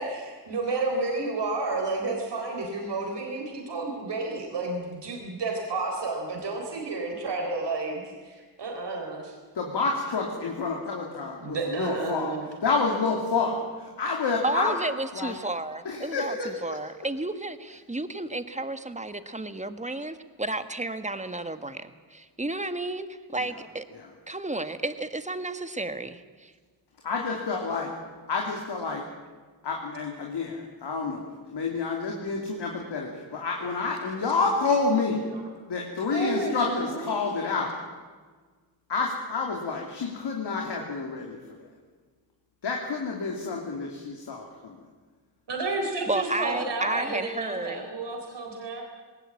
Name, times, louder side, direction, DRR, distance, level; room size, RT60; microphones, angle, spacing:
voice 1, 0.0-9.4 11.4-12.4 35.3-35.4 36.1-37.1 45.5-48.8, right 3 dB, 80° right, 2 dB, 4.0 m, -31 dB
voice 2, 9.5-12.3 12.6-14.8 15.1-15.4 15.8-16.8 23.9-24.1 27.0-27.9 28.3-29.0 29.6-35.3 35.7-37.8 38.9-41.7 42.6-44.8, left 4 dB, 80° left, 0 dB, 2.8 m, -29 dB
voice 3, 14.4-23.8 24.3-26.5 46.1-47.9, right 2 dB, 15° right, 10 dB, 1.5 m, -32 dB
20.0 x 18.5 x 8.7 m, 1.4 s
cardioid pair, 75°, 41 cm